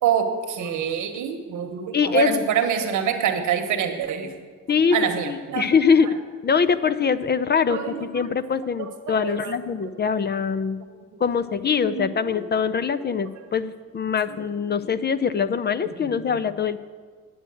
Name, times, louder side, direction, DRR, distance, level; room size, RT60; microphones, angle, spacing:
voice 1, 0.0-4.4 4.9-5.7 6.0-6.1 7.7-8.3 8.8-9.9 11.1-11.2 11.8-13.0 13.3-13.4 14.3-14.8 15.8-16.5, right 8 dB, 80° right, 6 dB, 1.3 m, -27 dB
voice 2, 1.9-2.4 4.7-5.0 5.2-6.1 6.4-10.8 11.2-16.8, left 6 dB, 35° left, 12 dB, 0.5 m, -23 dB
9.9 x 7.7 x 7.8 m, 1.5 s
cardioid pair, 90°, 30 cm